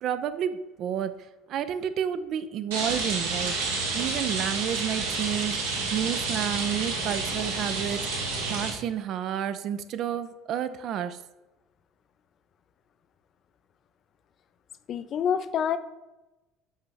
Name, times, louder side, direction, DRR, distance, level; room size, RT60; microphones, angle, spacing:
voice 1, 0.0-5.6 5.9-11.2, right 9 dB, 50° right, 11 dB, 0.4 m, -31 dB
Rain, 2.7-8.7, right 3 dB, 75° right, 1.2 m, -29 dB
voice 2, 14.9-15.8, left 8 dB, 45° left, 13 dB, 0.4 m, -27 dB
5.2 x 5.0 x 3.8 m, 1.0 s
figure-of-eight pair, 60°, 0 cm